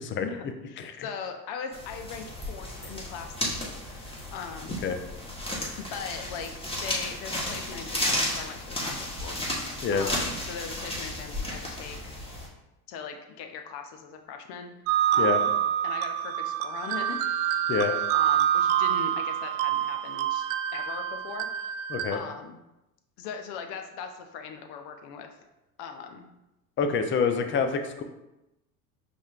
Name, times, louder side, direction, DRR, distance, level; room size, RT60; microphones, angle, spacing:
voice 1, 0.2-4.8 5.8-6.5 6.8-9.4 9.9-12.1 12.9-14.7 15.1-15.5 15.8-17.2 18.1-20.5 20.7-21.8 22.1-22.6 23.2-25.3 25.8-26.3, left 6 dB, 60° left, 5 dB, 0.7 m, -40 dB
sound 1, 1.7-12.5, left 1 dB, 10° left, 1.2 m, -33 dB
sound 2, 14.9-22.2, right 10 dB, 70° right, 0.5 m, -26 dB
voice 2, 26.8-28.0, left 5 dB, 30° left, 7 dB, 0.5 m, -26 dB
5.3 x 3.3 x 2.4 m, 0.95 s
hypercardioid pair, 85°, 44 cm